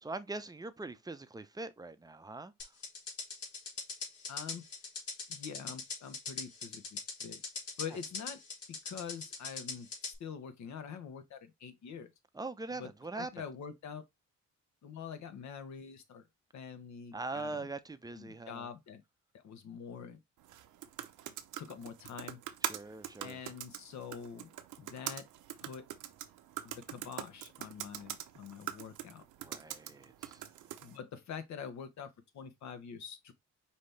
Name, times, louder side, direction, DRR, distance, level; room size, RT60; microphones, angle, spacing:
voice 1, 0.0-2.5 12.3-13.3 17.1-18.7 22.6-23.4 29.4-30.5, right 3 dB, 15° right, 0.5 m, -42 dB
sound 1, 2.6-10.1, left 4 dB, 50° left, 2.1 m, -41 dB
voice 2, 4.3-4.6 5.3-7.4 7.8-8.4 8.7-12.1 12.7-12.9 13.1-14.0 14.8-16.2 16.5-17.7 18.1-19.0 19.3-20.2 21.6-22.4 23.2-24.5 24.8-25.3 25.6-25.9 26.6-29.2 30.8-33.3, left 7 dB, 70° left, 1.0 m, -45 dB
sound 2, 20.4-31.0, right 12 dB, 80° right, 0.7 m, -44 dB
5.2 x 2.8 x 3.2 m
cardioid pair, 90°, 30 cm